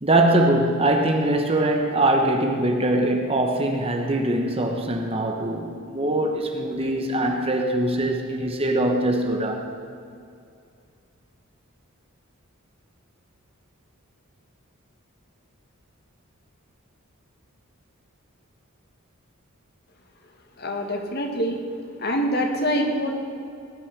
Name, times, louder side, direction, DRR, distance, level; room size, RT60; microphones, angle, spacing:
voice 1, 0.0-9.7, right 1 dB, 25° right, 1.1 m, -22 dB
voice 2, 20.6-21.6 22.0-23.1, equal, 45° left, 1.9 m, -25 dB
19.5 x 6.5 x 9.9 m
head